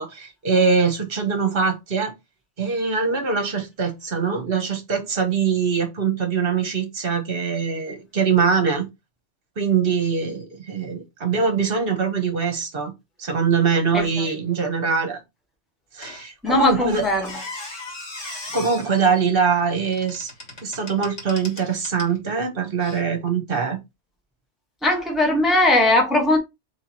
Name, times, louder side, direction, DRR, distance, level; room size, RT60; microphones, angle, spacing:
voice 1, 0.0-2.1 2.6-8.8 9.6-12.9 13.2-15.2 15.9-17.0 18.5-20.3 20.6-23.8, right 5 dB, 50° right, 1.4 m, -23 dB
Squeak, 16.0-22.2 22.8-23.0, left 2 dB, 65° left, 2.0 m, -39 dB
voice 2, 16.4-17.3 24.8-26.4, left 2 dB, ahead, 0.9 m, -19 dB
3.5 x 3.3 x 4.3 m
omnidirectional pair, 1.2 m